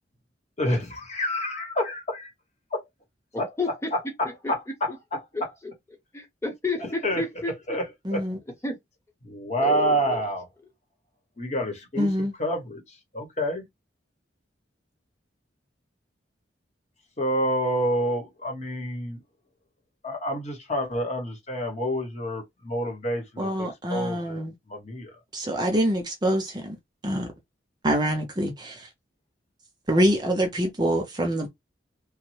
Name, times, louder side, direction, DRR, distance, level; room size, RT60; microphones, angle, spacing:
voice 1, 0.6-2.3 2.7-2.8 3.4-3.5 4.5-4.9 6.8-7.2 7.7-7.8 8.1-8.2 9.2-10.4 11.4-12.8 13.1-13.6 17.2-19.2 20.0-25.1, equal, 40° left, 1.0 m, -28 dB
voice 2, 3.3-3.9 4.9-5.0 5.3-5.4 6.1-7.5 8.6-8.7 9.6-10.2, left 3 dB, 15° left, 0.9 m, -30 dB
voice 3, 8.0-8.4 12.0-12.3 23.4-24.5 25.3-26.8 27.0-27.3 27.8-28.9 29.9-31.5, equal, 25° right, 0.6 m, -25 dB
3.0 x 2.1 x 3.1 m
head